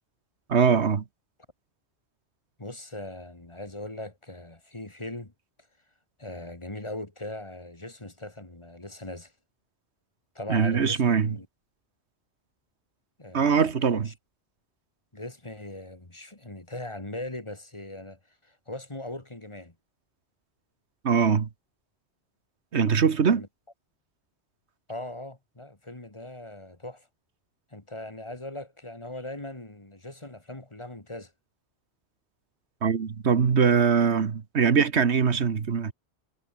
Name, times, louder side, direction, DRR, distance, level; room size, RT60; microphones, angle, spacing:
voice 1, 0.5-1.0 10.5-11.3 13.3-14.1 21.0-21.5 22.7-23.4 32.8-35.9, right 6 dB, 85° right, 1.6 m, -22 dB
voice 2, 2.6-5.3 6.2-9.3 10.3-11.5 13.2-14.1 15.1-19.7 23.3-23.5 24.9-27.1 27.7-31.3, left 1 dB, 25° left, 2.2 m, -40 dB
omnidirectional pair, 1.1 m